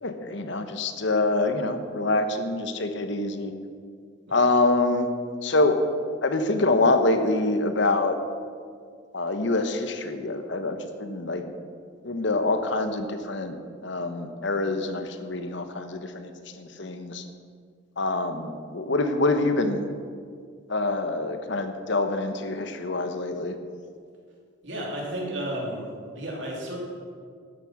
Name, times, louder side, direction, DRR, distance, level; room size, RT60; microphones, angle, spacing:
voice 1, 0.0-3.5 4.3-5.1 5.4-5.8 6.2-8.2 9.1-11.4 12.0-13.6 13.8-17.2 18.0-19.8 20.7-23.6, left 2 dB, 60° left, 8 dB, 0.9 m, -25 dB
voice 2, 24.6-25.9 26.1-26.8, right 1 dB, 60° right, -2 dB, 3.2 m, -32 dB
12.5 x 9.4 x 5.9 m, 2.1 s
head